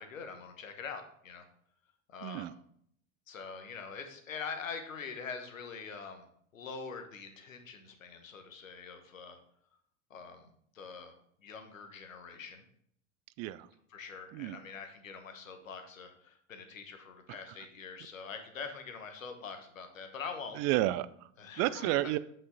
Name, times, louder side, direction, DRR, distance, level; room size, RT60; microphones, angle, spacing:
voice 1, 0.0-1.5 2.1-2.5 3.3-6.2 6.5-9.4 10.1-11.1 11.4-12.6 13.9-20.6 21.4-22.0, left 5 dB, 85° left, 7 dB, 1.2 m, -44 dB
voice 2, 2.2-2.5 13.4-13.7 14.3-14.6 17.5-17.6 20.5-21.3 21.6-22.2, right 15 dB, 45° right, 17 dB, 0.4 m, -31 dB
8.0 x 5.5 x 3.9 m, 0.66 s
hypercardioid pair, 85°, 38 cm